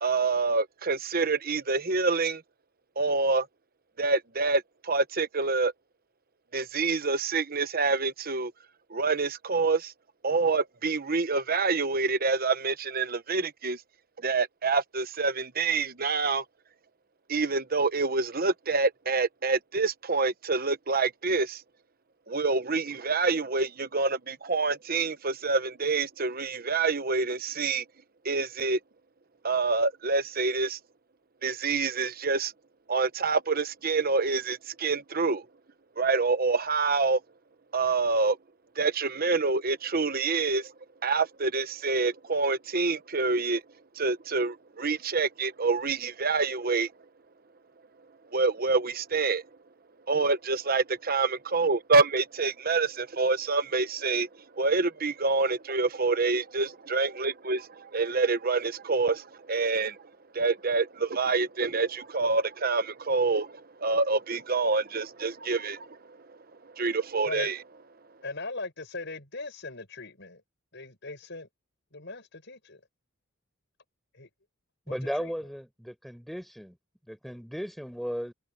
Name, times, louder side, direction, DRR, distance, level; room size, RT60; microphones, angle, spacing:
voice 1, 0.0-2.4 3.0-3.5 4.0-5.7 6.5-8.5 8.9-9.9 10.2-13.8 14.2-16.4 17.3-21.6 22.3-27.8 28.2-28.8 29.4-30.8 31.4-32.5 32.9-35.4 36.0-37.2 37.7-38.4 38.8-40.7 41.0-43.6 43.9-46.9 48.3-49.4 50.1-66.4 66.7-67.6, right 4 dB, 45° right, 1.0 m, -27 dB
voice 2, 68.2-70.4 70.7-71.5 71.9-72.8 74.1-74.3 74.9-75.3, left 3 dB, 55° left, 7.2 m, -39 dB
voice 3, 74.9-76.8 77.1-78.3, equal, ahead, 5.1 m, -35 dB
head